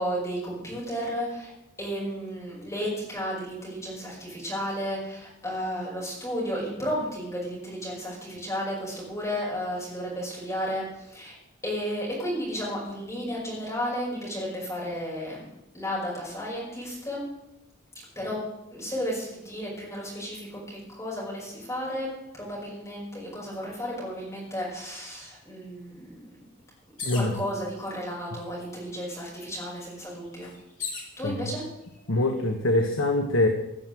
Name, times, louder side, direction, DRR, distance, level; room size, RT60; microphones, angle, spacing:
voice 1, 0.0-1.5 1.8-11.4 11.6-15.5 15.7-17.3 18.2-18.4 18.7-22.1 22.3-26.3 27.1-30.5 31.2-31.6, equal, 15° left, -5 dB, 5.5 m, -33 dB
sound 1, 27.0-27.4 28.3-28.4 28.8-31.1 31.9-32.4, left 5 dB, 40° left, 2.8 m, -38 dB
voice 2, 31.2-31.5 32.1-33.5, left 2 dB, 75° left, 4 dB, 1.4 m, -24 dB
15.5 x 7.2 x 7.8 m, 0.88 s
head